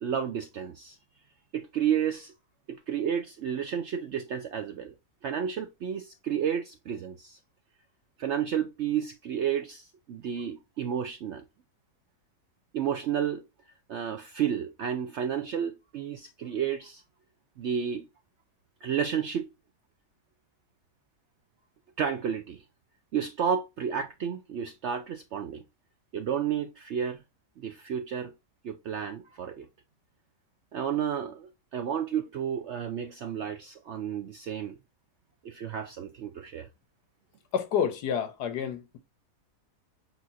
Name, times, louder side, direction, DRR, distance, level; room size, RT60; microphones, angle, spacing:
voice 1, 0.0-1.0 1.5-2.3 2.7-4.9 5.2-7.4 8.2-11.4 12.7-13.4 13.9-17.0 17.6-18.1 18.8-19.5 22.0-22.6 23.1-25.6 26.1-27.2 27.6-28.3 28.6-29.7 30.7-34.8 35.4-36.7, right 8 dB, 70° right, 0.6 m, -31 dB
voice 2, 37.5-39.0, left 7 dB, 85° left, 1.5 m, -29 dB
7.0 x 2.4 x 2.7 m
omnidirectional pair, 1.7 m